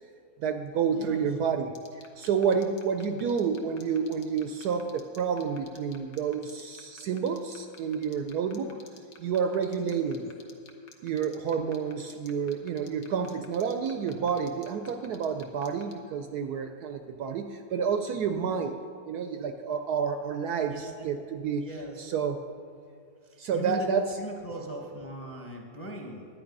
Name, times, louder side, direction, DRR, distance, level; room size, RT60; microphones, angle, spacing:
voice 1, 0.4-1.7 2.2-8.8 9.2-10.3 11.0-18.8 19.0-21.6 22.0-22.4 23.4-24.0, right 6 dB, 70° right, 7 dB, 1.0 m, -29 dB
voice 2, 0.9-1.3 20.6-21.1 21.6-22.1 23.2-26.3, equal, 10° left, 1 dB, 0.9 m, -39 dB
sound 1, 1.7-15.9, left 6 dB, 55° left, 1.3 m, -50 dB
11.0 x 9.5 x 5.3 m, 2.2 s
omnidirectional pair, 2.0 m